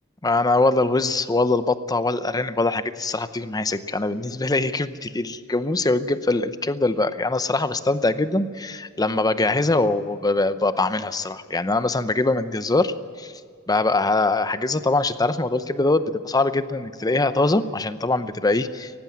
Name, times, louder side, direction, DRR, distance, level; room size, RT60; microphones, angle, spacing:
voice 1, 0.2-13.3 13.7-18.9, left 2 dB, 20° left, 12 dB, 0.7 m, -23 dB
18.0 x 15.5 x 9.4 m, 2.1 s
head